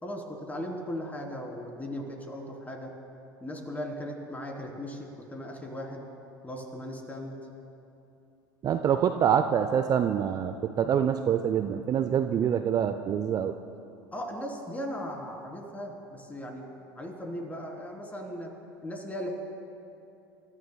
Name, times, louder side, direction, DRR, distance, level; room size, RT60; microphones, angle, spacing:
voice 1, 0.0-2.9 3.4-6.1 6.4-7.4 8.9-9.0 14.1-16.6 17.0-18.5 18.8-19.3, equal, 15° left, 0 dB, 3.6 m, -37 dB
voice 2, 8.6-13.5, right 8 dB, 35° right, 9 dB, 0.6 m, -26 dB
29.0 x 14.5 x 2.3 m, 2.7 s
figure-of-eight pair, 75°, 11 cm